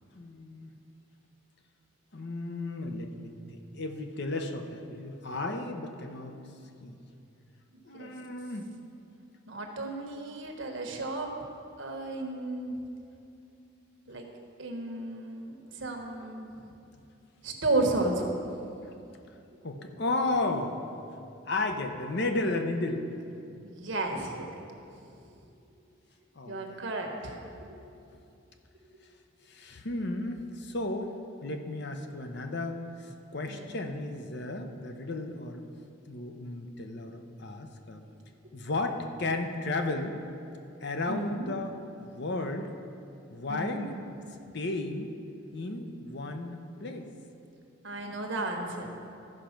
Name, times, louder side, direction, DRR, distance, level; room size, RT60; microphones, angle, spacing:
voice 1, 0.1-0.7 2.1-6.4 6.8-7.0 7.8-8.7 19.6-20.8 21.5-23.1 26.4-26.6 29.5-31.1 31.4-35.6 36.1-38.0 38.5-40.2 40.8-42.7 43.3-44.0 44.5-45.1 45.5-47.1, left 2 dB, 55° left, 5 dB, 0.7 m, -34 dB
voice 2, 7.7-8.1 9.5-11.3 11.8-12.8 14.1-14.3 14.6-16.5 17.4-18.8 23.6-24.5 26.5-27.7 33.5-33.7 41.1-41.5 43.5-43.9 47.8-48.9, right 2 dB, 65° right, 2 dB, 1.2 m, -33 dB
13.5 x 5.1 x 5.8 m, 2.7 s
head